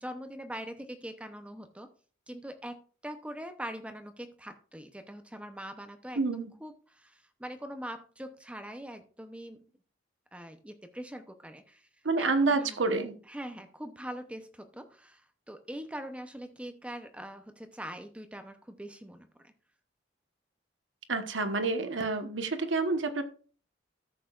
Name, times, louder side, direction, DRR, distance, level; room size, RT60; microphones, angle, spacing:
voice 1, 0.0-1.9 2.3-9.7 10.3-11.9 12.2-12.8 13.3-15.2 15.5-19.5, equal, 5° right, 0.6 m, -43 dB
voice 2, 6.2-6.5 12.0-13.2 21.1-23.2, right 3 dB, 85° right, 1.1 m, -28 dB
14.0 x 6.6 x 2.4 m
head